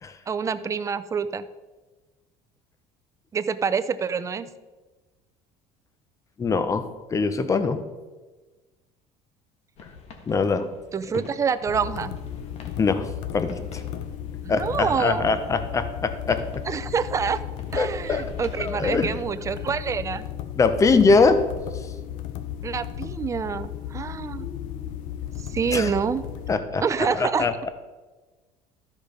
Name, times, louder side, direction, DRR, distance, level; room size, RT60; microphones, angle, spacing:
voice 1, 0.3-1.4 3.3-4.5 10.9-12.1 14.4-15.3 16.7-17.4 17.7-20.2 22.6-24.5 25.5-26.2 26.8-27.5, right 6 dB, 25° right, 13 dB, 0.5 m, -26 dB
voice 2, 6.4-6.8 7.1-7.8 10.3-10.7 12.8-13.8 14.5-16.4 17.8-18.3 18.6-19.1 20.6-21.4 21.7-21.9 24.3-24.9 25.7-25.9 26.5-26.8 27.2-27.7, left 4 dB, 25° left, 10 dB, 0.8 m, -23 dB
sound 1, 9.7-19.1, left 4 dB, 50° left, 1.5 m, -46 dB
sound 2, 11.7-26.6, left 10 dB, 75° left, 0.8 m, -35 dB
13.0 x 5.1 x 5.2 m, 1.2 s
cardioid pair, 125°, 14 cm